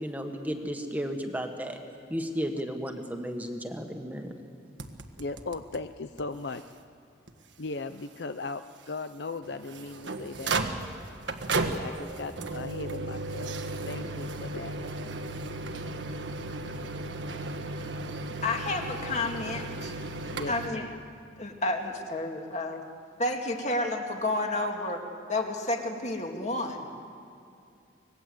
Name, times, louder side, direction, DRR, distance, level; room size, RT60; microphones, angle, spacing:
voice 1, 0.0-1.8 2.1-4.3, equal, 10° right, 4 dB, 1.5 m, -33 dB
sound 1, 4.8-5.8 6.2-6.3 6.5-6.6 7.3-7.4 9.4-20.7, right 2 dB, 75° right, 1.4 m, -35 dB
voice 2, 5.2-6.6 7.6-10.6 11.7-13.5 13.8-14.8 20.3-21.0, left 3 dB, 65° left, 10 dB, 0.7 m, -38 dB
voice 3, 18.4-20.0 20.5-20.8 21.4-22.8 23.2-25.0 25.3-26.9, left 2 dB, 40° left, 3 dB, 2.3 m, -30 dB
25.5 x 20.0 x 8.0 m, 2.6 s
head